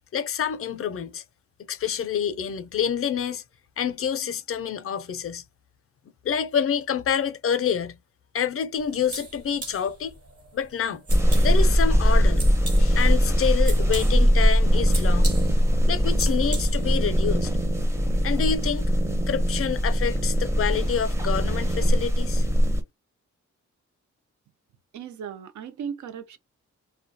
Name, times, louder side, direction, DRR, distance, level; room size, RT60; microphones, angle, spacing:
voice 1, 0.1-1.2 1.7-3.4 3.8-5.4 6.2-8.0 8.3-10.1 10.5-11.0 11.4-12.4 12.8-15.3 15.9-17.5 18.2-18.9 19.3-22.4, left 8 dB, 50° left, 0.4 m, -27 dB
sound 1, 8.8-17.1, right 3 dB, 55° right, 1.0 m, -41 dB
sound 2, 11.1-22.8, equal, 10° right, 0.5 m, -21 dB
voice 2, 24.9-26.4, right 7 dB, 75° right, 0.5 m, -36 dB
2.2 x 2.1 x 2.5 m
cardioid pair, 95°, 30 cm